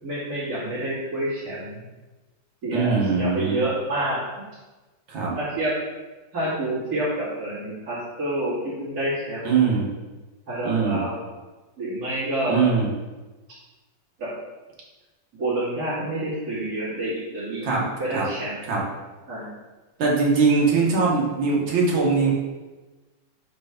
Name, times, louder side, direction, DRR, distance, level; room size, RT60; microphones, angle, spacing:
voice 1, 0.0-1.8 2.6-4.2 5.3-5.7 6.3-9.6 10.5-11.2 11.8-12.7 14.2-14.3 15.4-17.7 18.0-18.6 19.3-19.5, right 1 dB, 50° right, -14 dB, 2.8 m, -28 dB
voice 2, 2.7-3.6 5.1-5.3 9.5-9.9 10.6-11.0 12.5-12.9 17.6-17.8 18.1-18.3 18.7-18.8 20.0-22.3, right 4 dB, 80° right, -3 dB, 2.1 m, -21 dB
4.7 x 4.6 x 5.1 m, 1.2 s
omnidirectional pair, 2.1 m